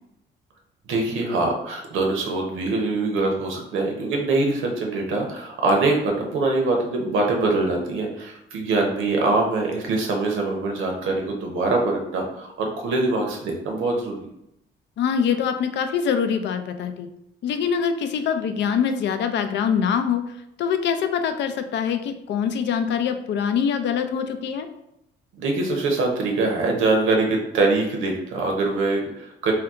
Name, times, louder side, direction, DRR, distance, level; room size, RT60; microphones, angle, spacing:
voice 1, 0.9-14.3 25.3-29.5, right 3 dB, 85° right, 1 dB, 0.8 m, -23 dB
voice 2, 15.0-17.1 17.4-20.2 20.6-24.7, left 7 dB, 65° left, 8 dB, 0.4 m, -24 dB
2.8 x 2.2 x 3.5 m, 0.82 s
cardioid pair, 90°, 20 cm